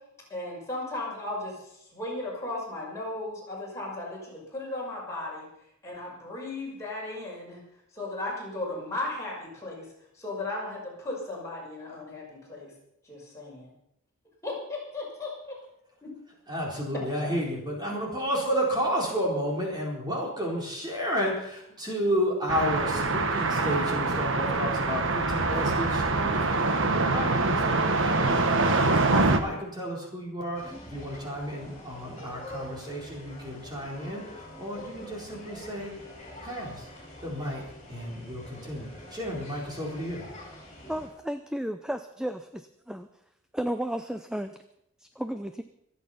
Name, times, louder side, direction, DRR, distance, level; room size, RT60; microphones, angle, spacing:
voice 1, 0.3-5.5 5.8-7.6 7.9-9.9 10.2-12.7 13.0-13.7 14.4-15.6 16.0-16.1, left 2 dB, 15° left, -4 dB, 5.8 m, -36 dB
voice 2, 16.5-35.9 36.4-36.9 37.2-37.6 37.9-40.2, equal, 20° right, -2 dB, 4.2 m, -32 dB
sound 1, 22.5-29.4, right 3 dB, 55° right, 1.3 m, -25 dB
sound 2, 30.5-41.1, left 1 dB, 30° left, 5.7 m, -45 dB
voice 3, 40.9-43.1 43.5-44.6 45.0-45.6, right 1 dB, 5° right, 9 dB, 0.5 m, -33 dB
25.0 x 8.6 x 5.7 m, 0.80 s
head